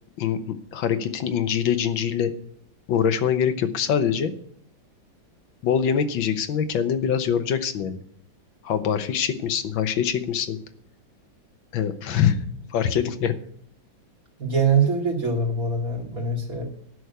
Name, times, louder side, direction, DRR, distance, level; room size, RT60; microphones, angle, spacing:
voice 1, 0.2-2.3 2.9-4.3 5.6-8.0 8.6-10.6 11.7-12.4 12.7-13.3, left 8 dB, 80° left, 10 dB, 1.8 m, -24 dB
voice 2, 14.4-16.6, right 4 dB, 45° right, -1 dB, 2.8 m, -23 dB
11.0 x 6.3 x 8.2 m, 0.64 s
omnidirectional pair, 2.1 m